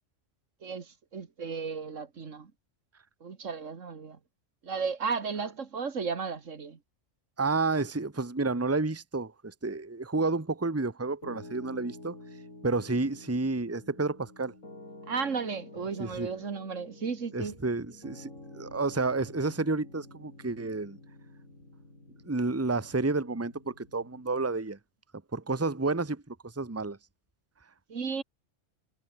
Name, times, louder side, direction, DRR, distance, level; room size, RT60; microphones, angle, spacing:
voice 1, 0.6-2.5 3.2-4.2 4.6-6.8 15.1-17.6 27.9-28.2, right 5 dB, 70° right, 2.1 m, -34 dB
voice 2, 7.4-12.2 12.6-14.5 16.0-16.3 17.3-18.3 18.5-21.0 22.2-24.8 25.3-27.0, right 3 dB, 10° right, 1.2 m, -30 dB
Piano, 11.2-24.6, left 2 dB, 85° left, 7.0 m, -50 dB
omnidirectional pair, 1.3 m